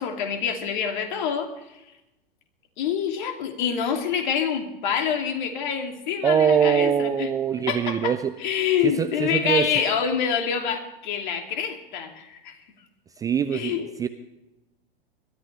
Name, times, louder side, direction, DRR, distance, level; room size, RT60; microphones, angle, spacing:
voice 1, 0.0-1.5 2.8-7.3 7.7-8.1 8.4-12.6 13.5-13.9, left 7 dB, 50° left, 4 dB, 2.7 m, -26 dB
voice 2, 6.2-8.3 8.8-9.9 13.2-14.1, right 8 dB, 10° right, 11 dB, 0.4 m, -23 dB
21.5 x 14.0 x 3.3 m, 0.94 s
figure-of-eight pair, 100°, 30 cm